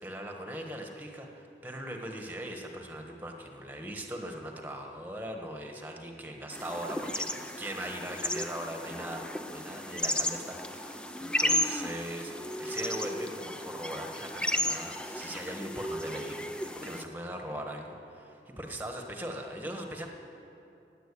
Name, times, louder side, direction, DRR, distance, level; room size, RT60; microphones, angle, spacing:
voice 1, 0.0-20.1, right 1 dB, 10° right, 2 dB, 1.3 m, -40 dB
sound 1, 6.5-17.0, left 1 dB, 5° left, 0.5 m, -34 dB
17.0 x 9.2 x 8.4 m, 2.8 s
head